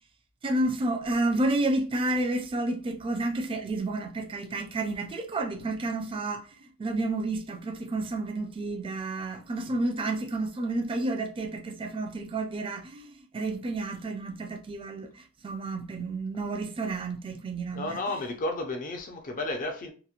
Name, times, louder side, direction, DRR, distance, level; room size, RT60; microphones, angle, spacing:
voice 1, 0.4-6.5 6.8-18.0, right 2 dB, 25° right, 0.3 m, -30 dB
voice 2, 17.7-19.9, left 2 dB, 40° left, 0.4 m, -32 dB
2.9 x 2.0 x 2.4 m
head